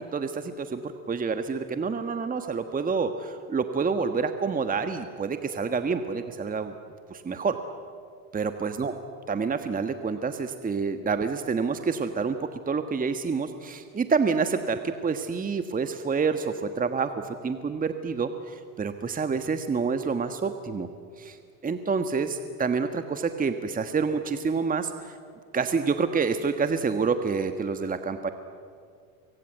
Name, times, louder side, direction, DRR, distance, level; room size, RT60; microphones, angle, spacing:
voice 1, 0.1-6.7 7.1-7.6 8.3-8.9 9.3-12.4 12.7-20.9 21.2-21.4 21.6-25.2 25.5-28.3, right 5 dB, 20° right, 8 dB, 1.4 m, -28 dB
25.0 x 22.0 x 9.1 m, 2.2 s
hypercardioid pair, 90°, 42 cm